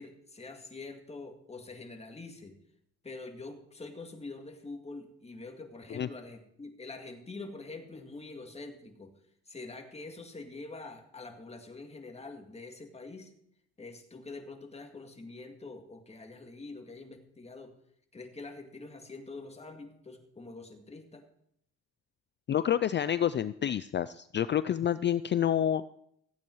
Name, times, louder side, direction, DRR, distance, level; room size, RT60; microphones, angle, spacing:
voice 1, 0.0-2.6 3.0-9.1 9.5-13.3 13.8-17.7 18.1-21.2, left 3 dB, 20° left, 4 dB, 2.1 m, -45 dB
voice 2, 22.5-25.8, left 10 dB, 40° left, 15 dB, 0.4 m, -28 dB
15.5 x 8.7 x 4.6 m, 0.73 s
cardioid pair, 90°, 30 cm